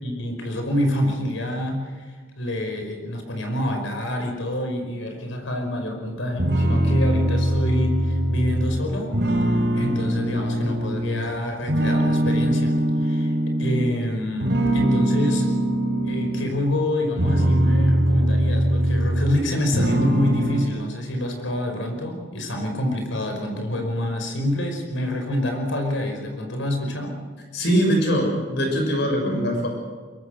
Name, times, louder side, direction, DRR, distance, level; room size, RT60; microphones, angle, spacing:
voice 1, 0.0-9.1 9.7-12.7 13.0-13.3 13.6-15.5 16.1-27.1, left 1 dB, 80° left, 4 dB, 5.3 m, -27 dB
sound 1, 6.4-11.3 11.7-14.0 14.4-16.5 17.0-19.4 19.7-20.7, right 1 dB, 65° right, 4.0 m, -22 dB
voice 2, 27.5-29.7, equal, 60° left, 2 dB, 7.0 m, -22 dB
23.0 x 22.5 x 6.5 m, 1.4 s
head